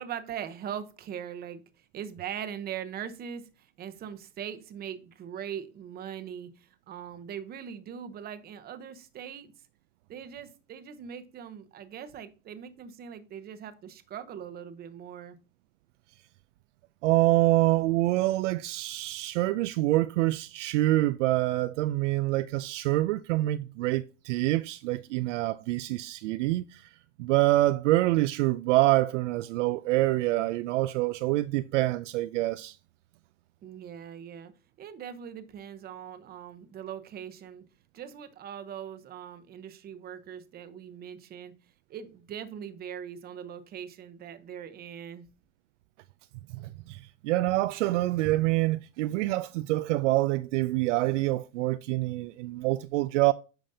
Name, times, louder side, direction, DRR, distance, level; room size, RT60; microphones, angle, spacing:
voice 1, 0.0-1.6 1.9-9.5 10.1-15.4 33.6-34.5 34.8-37.6 37.9-41.5 41.9-45.2, right 8 dB, 25° right, 0.8 m, -41 dB
voice 2, 17.0-26.9 27.2-32.8 46.5-53.3, right 17 dB, 65° right, 0.5 m, -26 dB
9.0 x 5.1 x 2.7 m
supercardioid pair, 140°, 41 cm